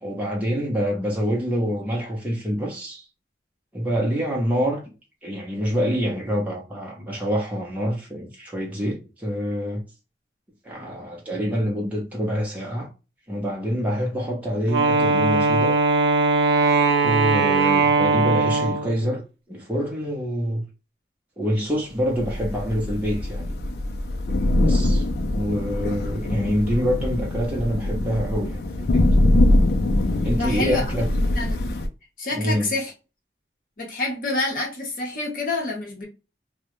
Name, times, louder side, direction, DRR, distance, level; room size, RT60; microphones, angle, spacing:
voice 1, 0.0-3.0 3.7-4.8 5.2-9.8 10.6-12.9 13.3-15.8 17.0-19.2 19.5-20.6 21.4-23.6 24.6-25.1 25.3-29.1 30.2-31.1 32.3-32.7, equal, 10° right, 0.5 m, -26 dB
Wind instrument woodwind instrument, 14.7-19.0, right 4 dB, 80° right, 0.5 m, -20 dB
Thunder / Rain, 22.1-31.9, left 1 dB, 65° left, 0.4 m, -23 dB
voice 2, 30.3-31.0 31.3-31.7 32.2-32.9 33.8-36.1, left 2 dB, 50° left, 0.8 m, -28 dB
2.2 x 2.0 x 2.9 m
head